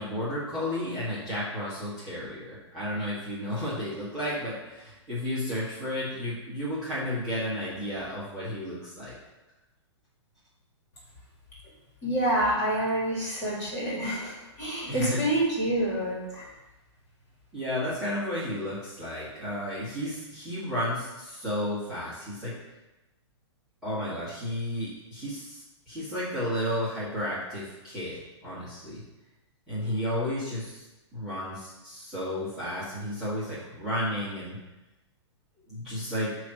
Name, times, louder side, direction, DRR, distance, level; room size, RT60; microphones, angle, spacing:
voice 1, 0.0-9.1 14.9-15.2 17.5-22.5 23.8-25.6 25.9-29.0 29.7-30.8 31.1-34.6 35.7-36.3, left 1 dB, 5° right, -14 dB, 2.0 m, -32 dB
voice 2, 12.0-16.5, right 1 dB, 25° left, -6 dB, 2.6 m, -27 dB
8.7 x 3.2 x 6.5 m, 1.0 s
hypercardioid pair, 175°, 15 cm